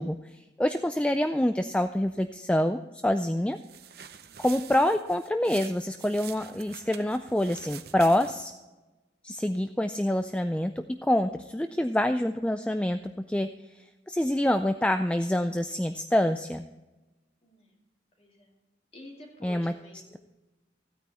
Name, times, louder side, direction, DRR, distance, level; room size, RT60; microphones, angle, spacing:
voice 1, 0.0-3.6 4.4-8.5 9.2-10.7 11.0-13.5 14.1-16.7 19.4-19.7, left 1 dB, 5° left, 8 dB, 0.3 m, -26 dB
sound 1, 3.6-8.6, right 9 dB, 55° right, 0.7 m, -46 dB
voice 2, 17.4-17.8 18.2-18.6 18.9-20.2, left 1 dB, 35° left, 0 dB, 2.6 m, -50 dB
15.5 x 9.1 x 4.2 m, 1.1 s
head